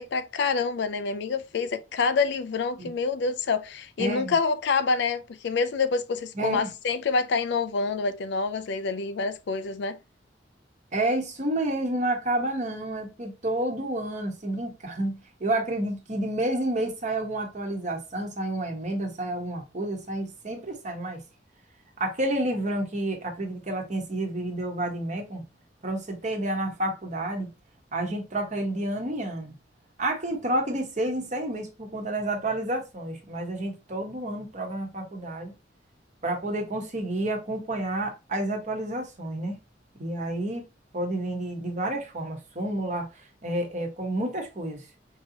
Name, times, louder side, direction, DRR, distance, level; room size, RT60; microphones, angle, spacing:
voice 1, 0.0-10.0, left 4 dB, 65° left, 0.4 m, -27 dB
voice 2, 4.0-4.3 6.3-6.7 10.9-21.2 22.0-25.5 25.8-27.5 27.9-29.5 30.0-35.5 36.2-39.6 40.0-40.6 40.9-44.9, right 1 dB, 40° right, 1.1 m, -30 dB
4.6 x 2.8 x 2.8 m
head